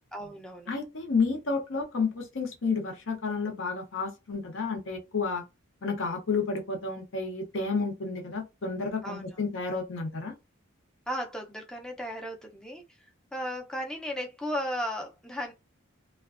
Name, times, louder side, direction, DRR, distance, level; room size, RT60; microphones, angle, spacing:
voice 1, 0.1-0.7 9.0-9.2 11.1-12.8 13.3-15.5, equal, 5° left, 0.4 m, -35 dB
voice 2, 0.7-5.4 5.8-10.3, left 4 dB, 70° left, 0.7 m, -31 dB
2.4 x 2.1 x 2.4 m
head